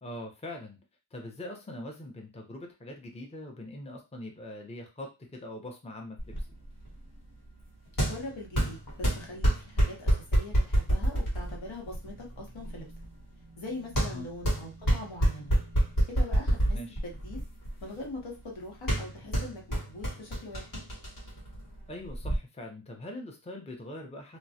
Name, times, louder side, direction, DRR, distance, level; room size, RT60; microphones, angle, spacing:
voice 1, 0.0-0.8 1.1-6.5 14.1-14.3 16.7-17.0 21.9-24.4, left 1 dB, 15° left, 2 dB, 0.6 m, -42 dB
sound 1, 6.2-22.4, right 1 dB, 45° left, 1.0 m, -29 dB
voice 2, 8.1-12.9 13.6-15.5 16.1-16.8 17.0-17.4 17.8-20.7, left 2 dB, 70° left, -2 dB, 0.9 m, -42 dB
2.2 x 2.0 x 2.7 m, 0.27 s
wide cardioid pair, 50°, 48 cm